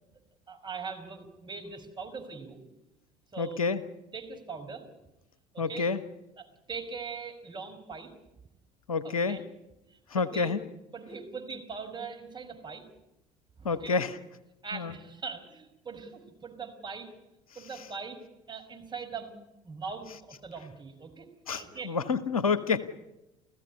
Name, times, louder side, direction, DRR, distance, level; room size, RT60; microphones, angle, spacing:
voice 1, 0.5-2.6 3.3-3.7 4.1-4.8 5.5-5.9 6.4-8.1 9.0-9.4 9.9-10.5 10.9-12.8 13.6-13.9 14.6-17.1 17.5-18.2 18.5-19.3 19.6-21.3 21.5-21.9, right 5 dB, 25° right, 4 dB, 5.2 m, -41 dB
voice 2, 3.4-3.8 5.6-6.0 8.9-9.4 10.1-10.6 13.6-14.2 14.7-14.9 17.7-17.9 21.5-22.8, left 4 dB, 80° left, 15 dB, 1.1 m, -28 dB
30.0 x 15.0 x 9.9 m, 0.93 s
figure-of-eight pair, 65°, 18 cm